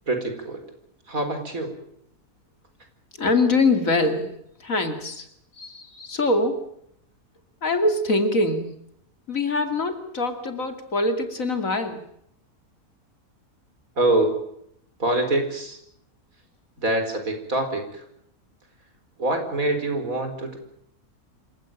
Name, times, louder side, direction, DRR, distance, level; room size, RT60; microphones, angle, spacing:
voice 1, 0.1-0.6 1.1-1.7 14.0-14.4 15.0-15.8 16.8-18.1 19.2-20.6, right 2 dB, 65° right, 6 dB, 4.7 m, -25 dB
voice 2, 3.2-5.3 5.6-6.7 7.6-8.7 9.3-12.0, left 2 dB, 60° left, 7 dB, 3.0 m, -24 dB
27.0 x 16.5 x 9.0 m, 0.74 s
omnidirectional pair, 1.6 m